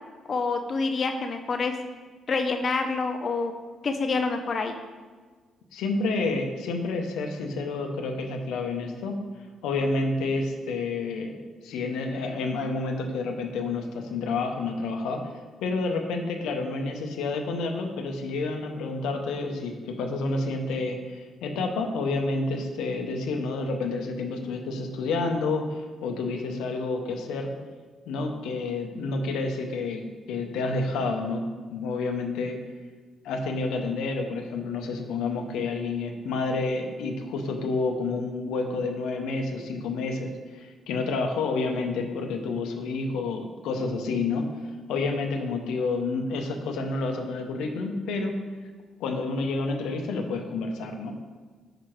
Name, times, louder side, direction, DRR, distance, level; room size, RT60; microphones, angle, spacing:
voice 1, 0.3-1.7 2.3-3.5 3.8-4.8, left 4 dB, 45° left, 5 dB, 0.4 m, -27 dB
voice 2, 5.7-9.2 9.6-11.4 11.6-15.2 15.6-27.5 28.1-32.6 33.2-44.5 44.9-48.4 49.0-51.1, left 3 dB, 90° left, 4 dB, 0.7 m, -29 dB
4.9 x 4.7 x 4.5 m, 1.5 s
cardioid pair, 90°, 0 cm